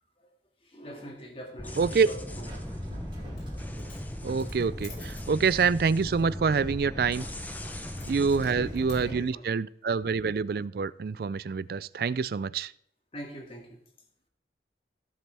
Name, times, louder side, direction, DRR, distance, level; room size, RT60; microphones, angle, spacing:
voice 1, 0.6-2.5 6.5-6.6 8.4-8.7 9.0-9.5 10.1-10.2 13.1-13.8, equal, 30° left, 2.0 m, -44 dB
sound 1, 1.6-9.2, left 1 dB, 10° left, 0.7 m, -38 dB
voice 2, 1.8-2.1 4.2-7.3 8.1-12.7, right 5 dB, 55° right, 0.4 m, -26 dB
Subway metro underground, 2.3-9.2, equal, 30° right, 3.6 m, -45 dB
Coin (dropping), 3.2-3.5 3.8-5.3 8.0-9.1, left 5 dB, 60° left, 3.7 m, -51 dB
17.0 x 7.4 x 3.4 m
head